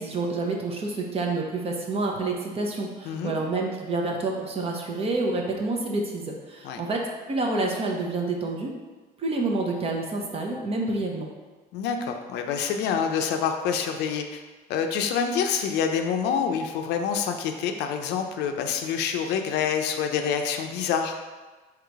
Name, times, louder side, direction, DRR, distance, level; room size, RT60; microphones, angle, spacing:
voice 1, 0.0-8.7 9.2-11.3, right 2 dB, 35° right, 0 dB, 0.8 m, -28 dB
voice 2, 3.0-3.3 6.6-6.8 11.7-14.4 14.7-21.2, left 7 dB, 85° left, 5 dB, 0.5 m, -27 dB
3.9 x 3.0 x 4.6 m, 1.3 s
cardioid pair, 110°, 17 cm